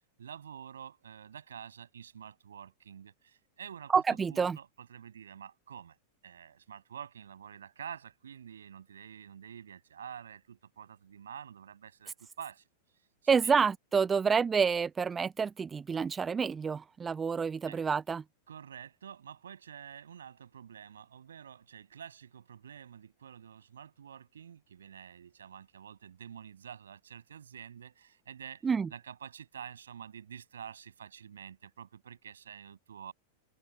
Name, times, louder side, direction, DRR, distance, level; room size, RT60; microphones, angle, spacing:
voice 1, 0.2-3.9 4.3-6.0 6.2-12.6 13.4-13.6 17.6-17.8 18.5-33.1, right 8 dB, 65° right, 7.5 m, -48 dB
voice 2, 3.9-4.6 13.3-18.2 28.6-28.9, right 6 dB, 15° right, 0.7 m, -28 dB
open air
figure-of-eight pair, 90°, 0 cm